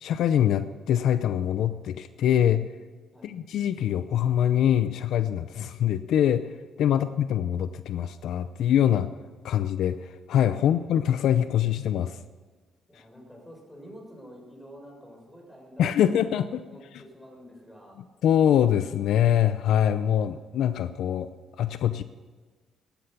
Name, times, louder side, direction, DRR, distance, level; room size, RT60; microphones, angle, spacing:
voice 1, 0.0-2.7 3.2-9.1 9.4-12.2 15.8-16.6 18.2-21.3 21.6-22.0, left 10 dB, 75° left, 12 dB, 0.6 m, -24 dB
voice 2, 12.9-16.3 16.6-18.0, equal, 5° left, 1 dB, 6.4 m, -48 dB
16.5 x 11.5 x 6.8 m, 1.4 s
cardioid pair, 90°, 0 cm